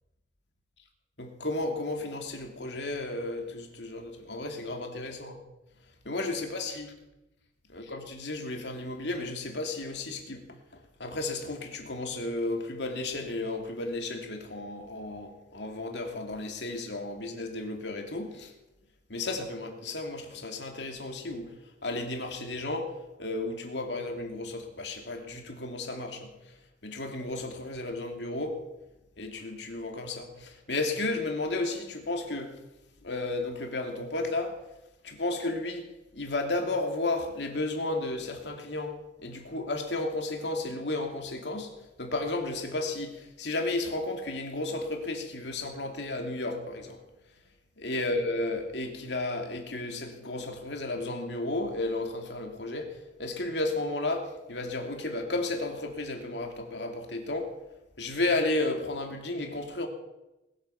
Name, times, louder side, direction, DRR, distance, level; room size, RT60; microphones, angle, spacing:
voice 1, 1.2-5.4 6.0-6.9 7.7-10.5 11.0-18.5 19.1-21.5 21.8-22.9 23.2-26.3 26.8-28.6 29.2-32.5 33.0-34.6 35.0-35.9 36.1-41.7 42.0-47.0 47.8-52.9 53.2-57.5 58.0-59.9, left 2 dB, 65° left, 2.7 m, -33 dB
20.5 x 9.7 x 7.0 m
head